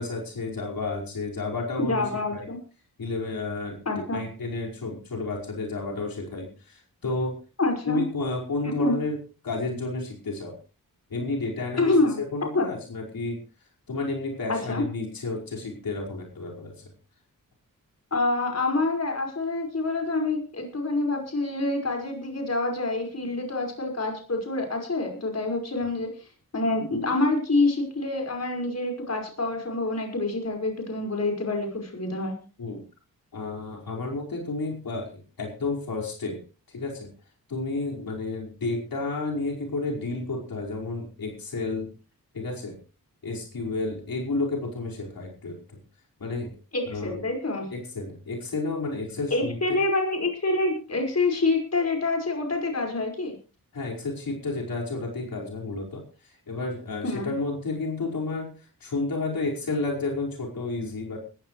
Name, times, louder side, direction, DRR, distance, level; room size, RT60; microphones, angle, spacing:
voice 1, 0.0-2.5 3.0-7.4 7.8-10.5 11.1-13.4 13.9-16.9 32.6-32.8 33.3-36.4 36.7-37.1 37.5-41.9 42.3-42.8 43.2-45.8 46.2-46.5 46.9-47.2 47.7-49.8 53.7-61.2, left 3 dB, 80° left, -2 dB, 5.1 m, -31 dB
voice 2, 1.8-2.6 3.9-4.2 7.6-8.0 8.8-8.9 11.8-12.2 12.5-12.7 14.5-14.8 18.1-26.1 26.5-32.3 46.7-47.7 49.3-53.4 57.0-57.3, left 2 dB, 45° left, 2 dB, 5.4 m, -26 dB
20.0 x 15.0 x 3.2 m, 0.35 s
wide cardioid pair, 90°, 35 cm